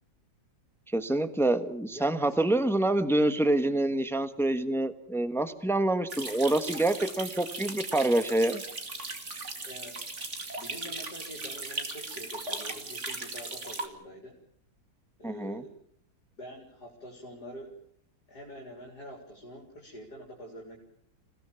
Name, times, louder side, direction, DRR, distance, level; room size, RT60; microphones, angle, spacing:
voice 1, 0.9-8.6 15.2-15.6, right 1 dB, ahead, 10 dB, 1.1 m, -26 dB
voice 2, 1.9-2.6 9.6-10.0 10.5-14.3 15.2-15.8 16.4-17.8 18.3-20.8, equal, 55° left, 0 dB, 4.7 m, -45 dB
sound 1, 6.1-13.9, right 3 dB, 40° right, 2.7 m, -38 dB
28.0 x 17.5 x 7.2 m, 0.70 s
omnidirectional pair, 2.0 m